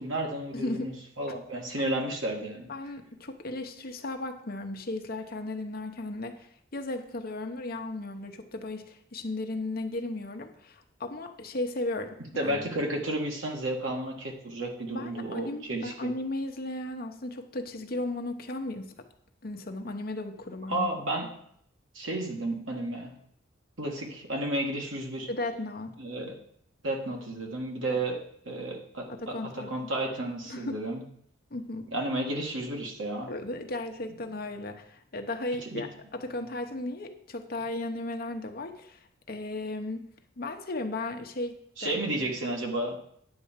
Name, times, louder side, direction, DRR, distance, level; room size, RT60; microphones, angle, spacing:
voice 1, 0.0-2.7 12.4-16.1 20.7-21.3 21.9-23.1 23.8-25.3 26.0-26.3 26.8-28.2 28.5-31.0 31.9-33.3 35.7-35.8 41.8-43.0, right 1 dB, 75° right, 1 dB, 1.8 m, -32 dB
voice 2, 0.5-0.9 1.8-1.9 2.7-12.7 14.9-18.9 19.4-20.9 25.3-26.0 27.9-28.0 29.1-29.9 30.4-30.8 31.5-31.9 33.2-40.1 40.4-41.5 41.8-42.0, left 2 dB, 45° left, 6 dB, 0.9 m, -35 dB
9.6 x 4.2 x 7.3 m, 0.68 s
head